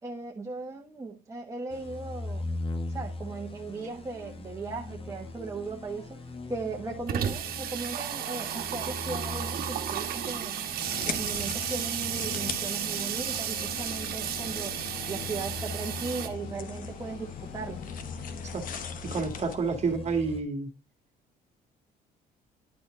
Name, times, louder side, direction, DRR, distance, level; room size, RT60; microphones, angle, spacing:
voice 1, 0.0-2.6 2.9-6.2 6.5-10.6 11.0-14.8 15.1-17.8, right 3 dB, 20° right, 1.2 m, -37 dB
sound 1, 1.7-20.4, left 2 dB, 35° left, 1.1 m, -41 dB
Water tap faucet / Sink (filling or washing), 5.7-5.8 6.0-6.1 6.4-16.3, right 9 dB, 60° right, 1.2 m, -33 dB
sound 2, 10.8-19.6, left 8 dB, 55° left, 1.0 m, -40 dB
voice 2, 19.0-20.7, right 4 dB, 40° right, 1.7 m, -29 dB
10.5 x 4.3 x 3.6 m
cardioid pair, 110°, 17 cm